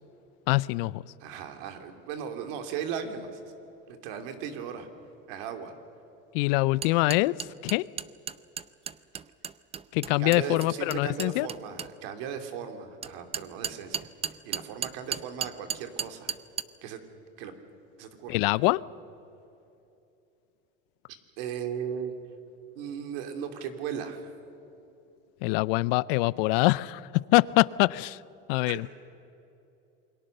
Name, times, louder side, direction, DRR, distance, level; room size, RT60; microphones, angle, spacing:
voice 1, 0.5-1.0 6.3-7.3 7.6-7.8 9.9-11.5 18.3-18.8 25.4-28.2 28.5-28.9, left 21 dB, 70° left, 0.6 m, -24 dB
voice 2, 1.2-3.4 3.9-4.9 5.3-5.7 10.2-16.3 16.8-17.0 17.4-17.5 18.0-18.4 21.4-22.1 22.7-24.3 28.7-28.9, right 7 dB, 70° right, 3.0 m, -37 dB
sound 1, 6.8-11.9 13.0-16.6, right 7 dB, 20° right, 0.6 m, -34 dB
28.0 x 22.5 x 6.7 m
supercardioid pair, 130°, 30 cm